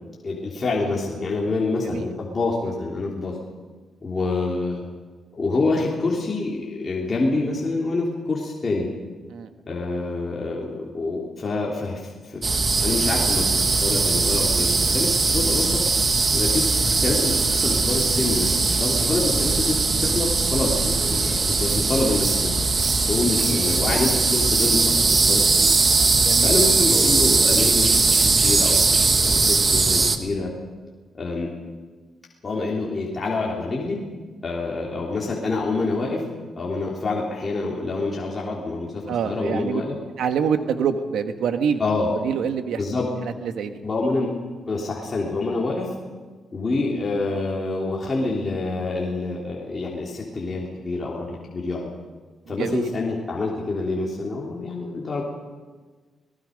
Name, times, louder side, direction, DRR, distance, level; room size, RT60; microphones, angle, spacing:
voice 1, 0.2-3.3 4.0-4.8 5.3-8.9 9.7-12.4 12.8-15.8 16.3-22.5 23.1-25.7 26.4-30.5 31.2-31.5 32.4-34.0 34.4-36.2 36.6-39.9 41.8-42.1 42.8-43.1 43.8-44.3 44.7-45.9 46.5-51.9 52.5-55.2, left 3 dB, 30° left, -4 dB, 3.4 m, -26 dB
voice 2, 1.8-2.1 9.3-9.5 26.2-26.5 39.1-39.8 40.2-41.8 42.2-42.8 43.2-43.8 52.5-52.9, right 7 dB, 85° right, 7 dB, 1.6 m, -26 dB
sound 1, 12.4-30.2, right 3 dB, 35° right, 1.6 m, -20 dB
28.0 x 19.0 x 5.3 m, 1.4 s
cardioid pair, 115°, 0 cm